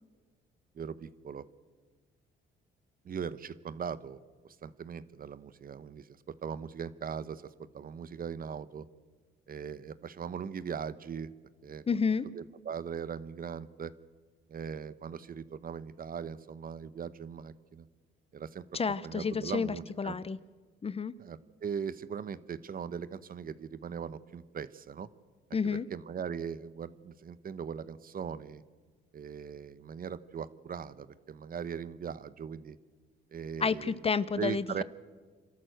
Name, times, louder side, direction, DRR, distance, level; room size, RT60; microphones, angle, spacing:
voice 1, 0.7-1.5 3.0-4.2 4.4-8.9 9.5-11.3 11.6-11.8 12.3-13.9 14.5-17.9 18.3-18.6 19.0-20.2 21.2-25.1 25.6-28.6 29.1-32.8 33.3-33.9 34.3-34.8, right 7 dB, 45° right, 16 dB, 0.9 m, -40 dB
voice 2, 11.9-12.2 18.7-20.4 20.8-21.1 25.5-25.9 33.6-34.8, left 5 dB, 30° left, 17 dB, 0.7 m, -30 dB
27.5 x 13.0 x 7.9 m, 1.4 s
cardioid pair, 90°, 20 cm